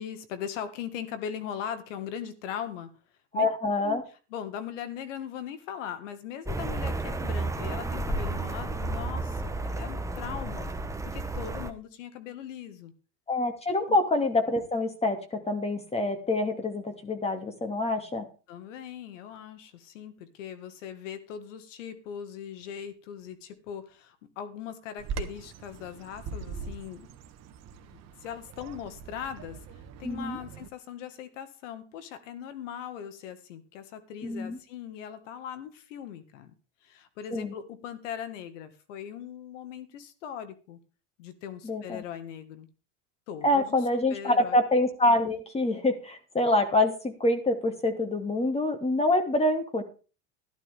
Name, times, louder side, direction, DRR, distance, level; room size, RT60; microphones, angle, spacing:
voice 1, 0.0-2.9 3.3-3.5 3.8-4.0 4.3-10.7 11.1-12.9 13.9-14.0 18.5-27.1 27.9-36.5 36.8-40.8 41.2-42.7 43.3-43.8 44.1-44.6, left 8 dB, 80° left, 11 dB, 1.9 m, -40 dB
voice 2, 3.3-4.0 13.3-18.3 30.0-30.4 34.2-34.6 37.3-37.5 41.6-42.0 43.4-49.8, left 2 dB, 15° left, 6 dB, 2.5 m, -26 dB
sound 1, 6.5-11.7, right 2 dB, 10° right, 1.1 m, -32 dB
Bird vocalization bird call bird song, 25.0-30.7, right 5 dB, 45° right, 1.5 m, -41 dB
13.5 x 11.5 x 3.6 m, 0.36 s
supercardioid pair, 105°, 37 cm